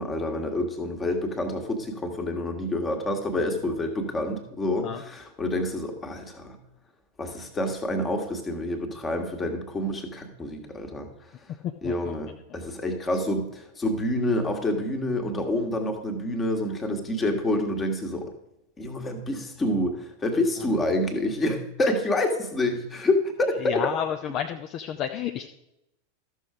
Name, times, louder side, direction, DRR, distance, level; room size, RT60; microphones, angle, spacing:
voice 1, 0.0-6.6 7.2-11.1 11.8-18.3 18.8-23.9, left 1 dB, 20° left, 5 dB, 1.6 m, -28 dB
voice 2, 23.6-25.5, left 9 dB, 35° left, 6 dB, 0.6 m, -31 dB
13.5 x 6.5 x 4.9 m, 0.86 s
figure-of-eight pair, 90°, 0 cm